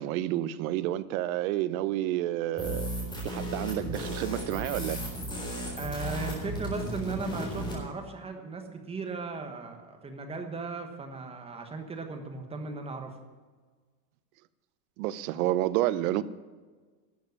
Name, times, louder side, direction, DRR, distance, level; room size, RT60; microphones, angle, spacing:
voice 1, 0.0-2.9 3.2-5.0 15.0-16.2, right 14 dB, 60° right, 16 dB, 0.8 m, -29 dB
sound 1, 2.6-7.8, right 1 dB, 10° left, 3.9 m, -35 dB
voice 2, 5.8-13.2, right 4 dB, 10° right, 5 dB, 1.2 m, -37 dB
12.5 x 7.5 x 9.5 m, 1.4 s
supercardioid pair, 155°, 48 cm